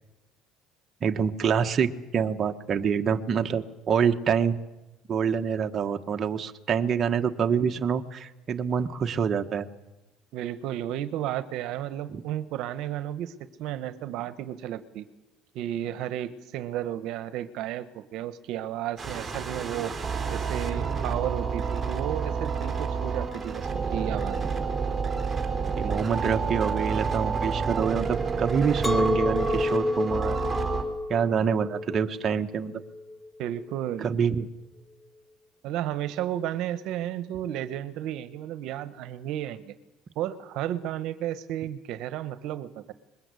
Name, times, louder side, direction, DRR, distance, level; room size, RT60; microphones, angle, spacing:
voice 1, 1.0-4.6 5.1-9.7 12.1-12.2 25.7-30.4 31.1-32.7 34.0-34.5, right 7 dB, 35° right, 5 dB, 1.3 m, -26 dB
voice 2, 10.3-15.1 15.5-19.9 20.3-24.5 33.4-34.1 35.6-39.7 40.1-42.9, right 12 dB, 65° right, 12 dB, 1.2 m, -33 dB
sound 1, 19.0-30.8, right 5 dB, 20° right, 4.1 m, -29 dB
Chink clink, 28.8-34.0, left 2 dB, 5° left, 1.1 m, -30 dB
23.5 x 21.5 x 8.4 m, 0.99 s
cardioid pair, 120°, 0 cm